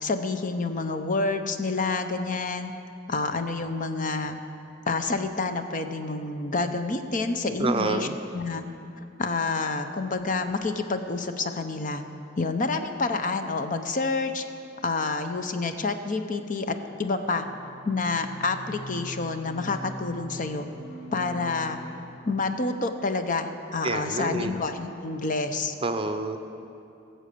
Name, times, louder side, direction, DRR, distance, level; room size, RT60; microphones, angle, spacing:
voice 1, 0.0-2.7 3.1-4.4 4.9-8.1 8.3-8.6 9.2-12.0 12.4-14.4 14.8-17.5 17.8-20.7 21.1-21.8 22.3-25.7, left 3 dB, 40° left, 8 dB, 0.7 m, -28 dB
voice 2, 7.6-8.1 23.8-24.6 25.8-26.4, right 3 dB, 30° right, 8 dB, 0.6 m, -28 dB
sound 1, 15.5-22.2, equal, 55° left, 1.2 m, -43 dB
17.5 x 7.5 x 6.8 m, 2.7 s
head